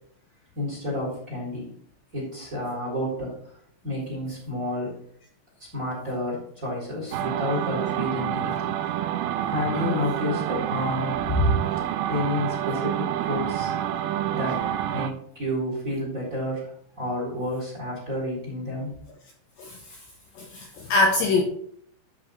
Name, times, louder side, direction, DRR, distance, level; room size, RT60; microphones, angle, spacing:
voice 1, 0.5-1.7 2.1-3.3 3.8-4.9 5.7-8.8 9.1-11.6 12.1-13.7 14.3-14.6 14.9-18.9, left 1 dB, 15° right, -4 dB, 3.9 m, -30 dB
sound 1, 7.1-15.1, right 11 dB, 80° right, 3.2 m, -28 dB
voice 2, 9.7-10.1 19.6-20.0 20.4-21.4, left 2 dB, 70° left, 1 dB, 2.9 m, -24 dB
12.5 x 5.5 x 4.5 m, 0.62 s
omnidirectional pair, 5.9 m